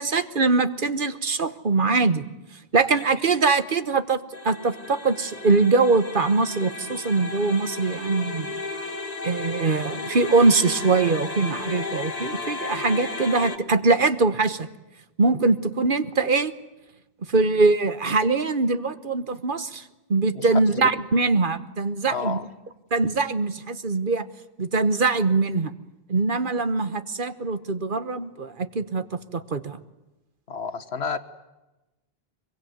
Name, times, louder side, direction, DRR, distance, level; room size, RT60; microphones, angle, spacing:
voice 1, 0.0-2.2 2.7-8.6 9.2-14.7 15.2-16.5 17.3-19.8 20.1-22.4 22.9-24.2 24.6-25.7 26.1-29.0 29.3-29.8, right 3 dB, 50° right, 13 dB, 1.3 m, -22 dB
sound 1, 4.3-13.6, left 3 dB, 40° left, 1.7 m, -34 dB
voice 2, 20.3-20.9 22.1-22.5 30.5-31.2, left 5 dB, 75° left, 11 dB, 1.6 m, -31 dB
24.0 x 23.0 x 9.4 m, 1.0 s
omnidirectional pair, 1.1 m